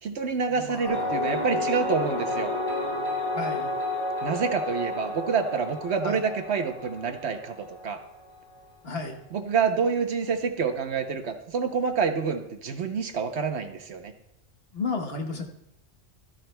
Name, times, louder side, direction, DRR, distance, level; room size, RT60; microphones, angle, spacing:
voice 1, 0.0-2.5 4.2-8.0 9.3-14.1, right 5 dB, 65° right, 7 dB, 1.1 m, -27 dB
voice 2, 0.5-1.5 3.3-3.7 6.0-6.2 8.8-9.2 14.7-15.4, left 4 dB, 55° left, 3 dB, 1.3 m, -33 dB
sound 1, 0.8-8.4, left 2 dB, 80° left, 3.1 m, -31 dB
14.5 x 13.0 x 2.2 m, 0.87 s
omnidirectional pair, 1.3 m